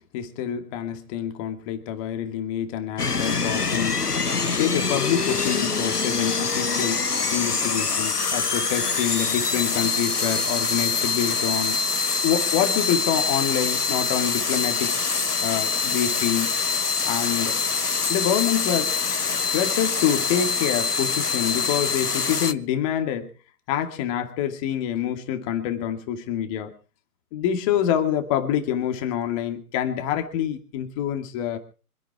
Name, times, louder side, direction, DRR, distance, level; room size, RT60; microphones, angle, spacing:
voice 1, 0.1-4.1 4.5-11.8 12.2-15.0 15.4-16.6 17.0-17.6 18.1-19.0 19.5-23.3 23.7-26.7 27.3-31.6, left 10 dB, 20° left, 5 dB, 2.4 m, -26 dB
sound 1, 3.0-22.5, left 4 dB, 85° left, 1.3 m, -25 dB
25.5 x 11.5 x 4.8 m, 0.38 s
figure-of-eight pair, 135°, 45 cm